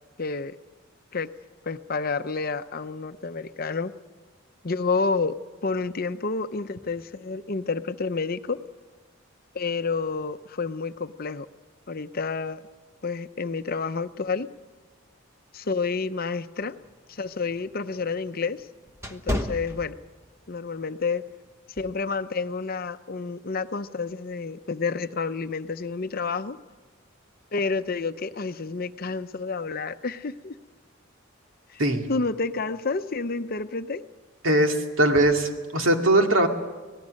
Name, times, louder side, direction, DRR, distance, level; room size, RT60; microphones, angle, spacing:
voice 1, 0.2-0.6 1.1-1.3 1.7-3.9 4.6-5.4 5.6-8.6 9.5-11.5 11.9-12.6 13.0-14.5 15.5-16.8 17.1-18.7 19.1-19.9 20.5-21.2 21.8-26.6 27.5-30.6 31.7-31.8 32.1-34.0, left 4 dB, 45° left, 11 dB, 0.7 m, -29 dB
sound 1, 16.8-20.5 20.9-21.2 21.8-22.0, left 1 dB, 15° right, 1.1 m, -33 dB
voice 2, 34.4-36.5, right 1 dB, 75° right, 3 dB, 2.3 m, -20 dB
25.5 x 18.0 x 6.5 m, 1.4 s
head